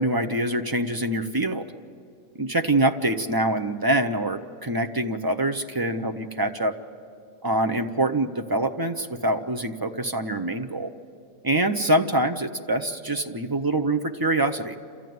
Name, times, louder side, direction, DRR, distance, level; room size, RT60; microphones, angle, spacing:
voice 1, 0.0-1.7 2.4-6.8 7.4-10.9 11.4-14.7, right 1 dB, 25° right, 7 dB, 0.5 m, -25 dB
28.0 x 14.0 x 9.3 m, 2.3 s
omnidirectional pair, 1.4 m